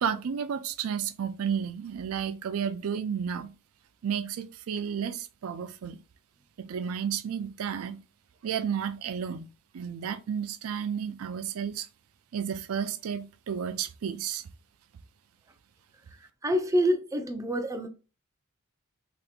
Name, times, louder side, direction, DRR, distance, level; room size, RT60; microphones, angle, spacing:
voice 1, 0.0-3.5 4.0-6.0 6.6-8.0 8.4-9.5 9.7-11.9 12.3-14.5, right 7 dB, 80° right, 0.4 m, -32 dB
voice 2, 16.4-17.9, equal, 15° right, 0.5 m, -26 dB
3.5 x 2.9 x 2.4 m
head